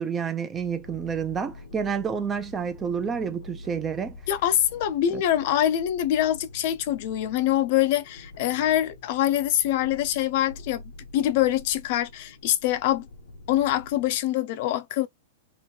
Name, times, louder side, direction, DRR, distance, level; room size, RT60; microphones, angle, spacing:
voice 1, 0.0-4.2 5.1-5.2, right 6 dB, 15° right, 0.5 m, -29 dB
sound 1, 0.5-14.2, left 2 dB, 85° left, 0.9 m, -46 dB
voice 2, 4.3-10.8 11.1-13.1 13.5-15.1, left 12 dB, 50° left, 0.5 m, -24 dB
3.0 x 2.6 x 2.8 m
hypercardioid pair, 150°, 0 cm